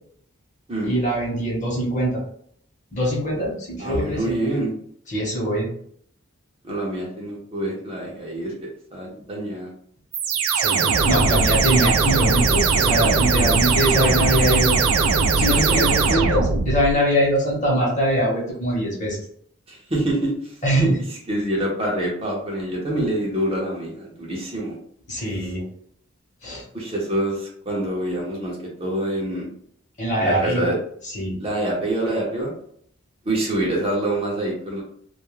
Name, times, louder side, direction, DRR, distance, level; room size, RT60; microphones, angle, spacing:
voice 1, 0.8-2.2 2.9-4.4 5.1-5.7 10.5-14.8 15.3-19.2 20.6-21.0 25.1-25.7 26.4-26.6 30.0-30.7 31.0-31.4, equal, 35° left, -4 dB, 0.9 m, -22 dB
voice 2, 3.8-4.7 6.6-9.7 19.7-20.5 21.3-24.8 26.7-29.5 30.2-30.8 31.4-32.5 33.2-34.8, right 1 dB, 25° right, -3 dB, 0.6 m, -26 dB
sound 1, 10.1-16.9, right 4 dB, 85° right, 0.4 m, -19 dB
2.3 x 2.1 x 3.0 m, 0.63 s
head